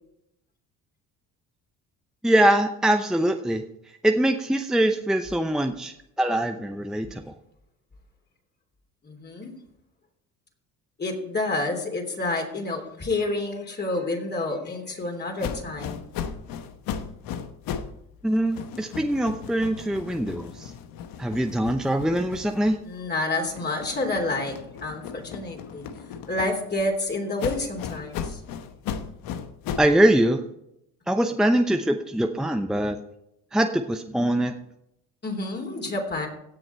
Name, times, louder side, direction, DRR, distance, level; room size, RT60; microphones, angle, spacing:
voice 1, 2.2-3.6 4.0-7.2 18.2-20.7 21.2-22.8 29.8-30.4 31.1-33.0 33.5-34.5, right 1 dB, ahead, 5 dB, 0.7 m, -23 dB
voice 2, 9.0-9.5 11.0-16.0 22.8-24.5 24.8-25.9 26.3-28.4 35.2-36.3, left 2 dB, 30° left, 2 dB, 3.2 m, -29 dB
sound 1, 15.4-18.0 18.3-23.1 23.5-26.8 27.4-30.0, left 7 dB, 75° left, 1.1 m, -36 dB
17.0 x 6.4 x 4.5 m, 0.80 s
supercardioid pair, 90°, 35 cm